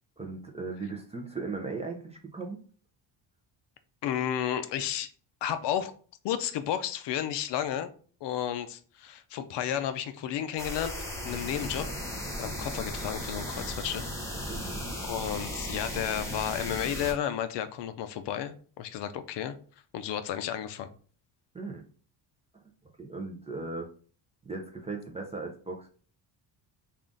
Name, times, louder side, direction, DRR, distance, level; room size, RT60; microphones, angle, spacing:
voice 1, 0.2-2.6 14.5-14.9 21.5-21.8 23.0-23.9 24.5-25.9, right 3 dB, 15° right, 1 dB, 0.4 m, -37 dB
voice 2, 4.0-5.1 5.4-5.9 6.2-7.9 8.2-10.9 11.2-11.9 12.4-14.1 14.4-14.7 15.0-19.5 19.9-20.9, left 10 dB, 65° left, 11 dB, 0.5 m, -32 dB
sound 1, 10.6-17.1, equal, 5° left, 0.7 m, -36 dB
3.5 x 2.4 x 3.7 m, 0.42 s
cardioid pair, 140°, 46 cm